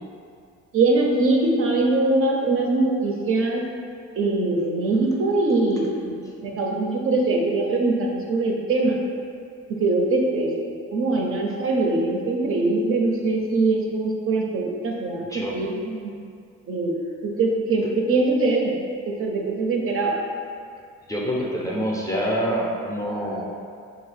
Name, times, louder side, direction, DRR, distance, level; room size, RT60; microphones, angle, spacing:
voice 1, 0.7-3.6 4.1-6.1 6.4-9.0 9.7-16.1 16.7-16.9 17.2-18.8 19.1-20.2, right 2 dB, 45° right, 0 dB, 0.5 m, -22 dB
voice 2, 15.3-15.6 21.1-23.5, equal, 10° left, -4 dB, 0.4 m, -26 dB
2.8 x 2.1 x 4.0 m, 2.3 s
cardioid pair, 90°, 30 cm